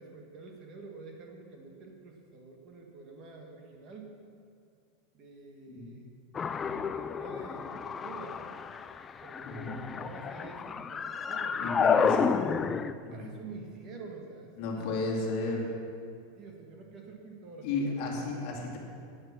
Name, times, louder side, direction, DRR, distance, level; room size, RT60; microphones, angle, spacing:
voice 1, 0.0-4.1 5.1-6.1 6.5-8.4 9.2-12.4 13.1-15.1 16.3-17.8 18.1-18.4, right 4 dB, 30° right, 1 dB, 1.6 m, -48 dB
sound 1, 6.3-12.9, left 6 dB, 15° left, 0.3 m, -30 dB
voice 2, 9.4-9.8 11.6-12.5 13.0-13.3 14.6-15.7 17.6-18.8, left 3 dB, 45° left, 0 dB, 2.3 m, -33 dB
13.0 x 9.8 x 6.1 m, 2.3 s
supercardioid pair, 165°, 0 cm